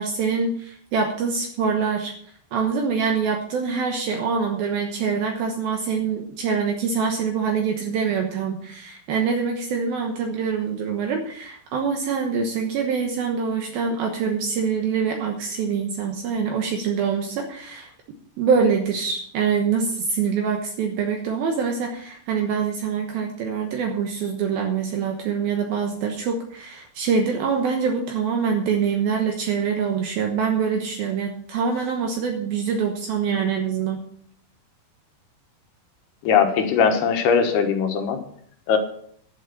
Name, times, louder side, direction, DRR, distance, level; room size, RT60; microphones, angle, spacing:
voice 1, 0.0-2.1 2.5-17.9 18.4-34.0, right 6 dB, 70° right, 2 dB, 2.8 m, -25 dB
voice 2, 36.2-38.2 38.7-38.8, left 6 dB, 70° left, 5 dB, 3.2 m, -20 dB
11.5 x 7.4 x 7.0 m, 0.63 s
omnidirectional pair, 4.8 m